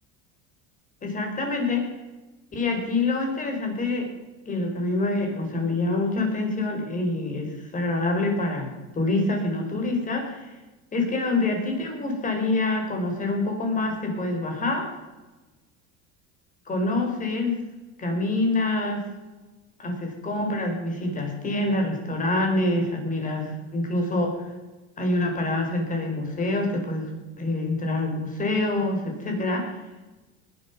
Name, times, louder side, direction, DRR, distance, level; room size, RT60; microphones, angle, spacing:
voice 1, 1.0-1.9 2.5-4.1 4.5-10.6 10.9-14.9 16.7-17.6 18.0-19.1 19.8-24.4 25.0-29.7, left 2 dB, 25° left, 3 dB, 4.6 m, -26 dB
19.5 x 11.0 x 6.0 m, 1.2 s
cardioid pair, 145°, 34 cm